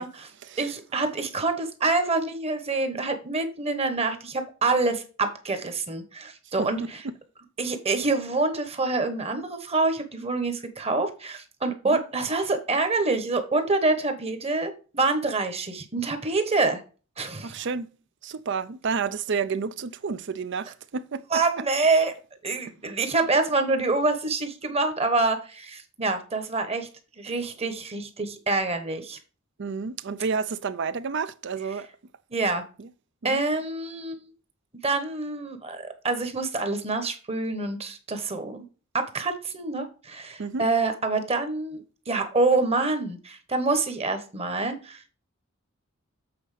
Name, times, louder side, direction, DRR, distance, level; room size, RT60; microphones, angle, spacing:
voice 1, 0.6-7.0 7.6-16.8 17.2-17.7 21.3-22.1 22.4-26.9 27.2-29.2 32.3-32.6 33.2-34.3 34.8-38.6 38.9-41.8 42.1-45.0, right 3 dB, 30° right, 1.2 m, -26 dB
voice 2, 6.6-7.1 11.8-12.0 17.4-17.9 18.2-21.4 29.6-31.9 32.8-32.9 33.2-33.4 40.4-40.6, right 5 dB, 60° right, 0.5 m, -30 dB
7.9 x 4.2 x 5.0 m
head